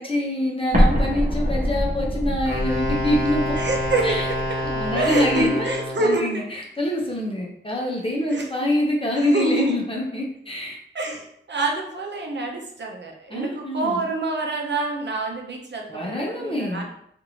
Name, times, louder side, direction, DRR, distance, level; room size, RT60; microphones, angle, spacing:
voice 1, 0.0-3.6 4.0-4.2 4.6-10.8 13.3-14.0 15.9-16.8, left 1 dB, 25° left, -2 dB, 0.7 m, -25 dB
Explosion, 0.7-5.5, equal, 40° right, 0.8 m, -25 dB
Wind instrument woodwind instrument, 2.5-6.2, left 1 dB, 55° left, 1.1 m, -28 dB
voice 2, 3.6-4.2 4.5-4.6 4.9-6.4 8.3-8.5 9.1-9.8 10.9-16.9, right 2 dB, 60° right, 1 dB, 0.6 m, -26 dB
2.9 x 2.6 x 2.8 m, 0.69 s
wide cardioid pair, 60°, 20 cm